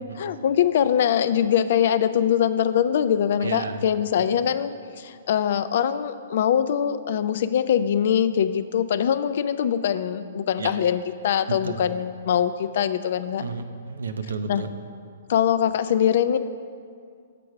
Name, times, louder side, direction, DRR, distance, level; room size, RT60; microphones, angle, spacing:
voice 1, 0.0-4.7 5.0-13.4 14.5-14.6 15.3-16.4, left 9 dB, 60° left, 12 dB, 0.3 m, -23 dB
voice 2, 3.4-3.8 10.6-10.7 11.5-11.8 13.4-14.7, right 4 dB, 85° right, 8 dB, 0.5 m, -31 dB
6.8 x 4.7 x 6.2 m, 2.2 s
hypercardioid pair, 125°, 0 cm